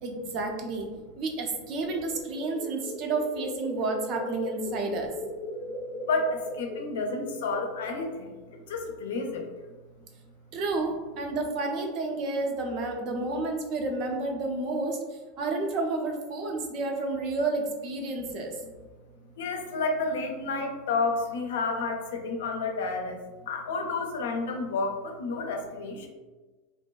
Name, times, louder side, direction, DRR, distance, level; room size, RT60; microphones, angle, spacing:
voice 1, 0.0-0.9 1.2-5.1 10.5-18.6, right 3 dB, 50° right, 2 dB, 0.5 m, -30 dB
sound 1, 1.8-8.3, left 1 dB, 85° right, 1.3 m, -38 dB
voice 2, 6.1-9.5 19.4-23.2 23.5-26.1, left 3 dB, 80° left, 3 dB, 0.4 m, -30 dB
2.5 x 2.2 x 2.2 m, 1.3 s
hypercardioid pair, 100°, 0 cm